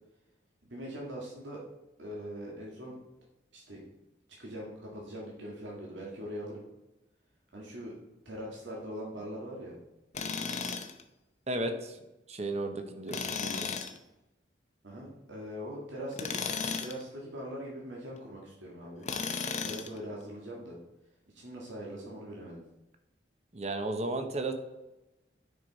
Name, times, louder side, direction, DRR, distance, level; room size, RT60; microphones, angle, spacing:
voice 1, 0.6-1.6 2.0-2.9 3.5-3.8 4.4-6.7 7.5-7.9 8.3-9.8 14.8-16.5 16.8-19.1 19.6-20.8 21.3-22.6, equal, 85° right, -3 dB, 1.9 m, -41 dB
Tools, 10.1-11.0 13.1-14.0 16.1-17.0 19.0-20.0, left 5 dB, 40° left, 0.7 m, -34 dB
voice 2, 11.5-12.0 12.3-13.7 23.5-24.5, right 2 dB, 35° right, 6 dB, 0.9 m, -34 dB
9.7 x 5.3 x 4.1 m, 0.98 s
head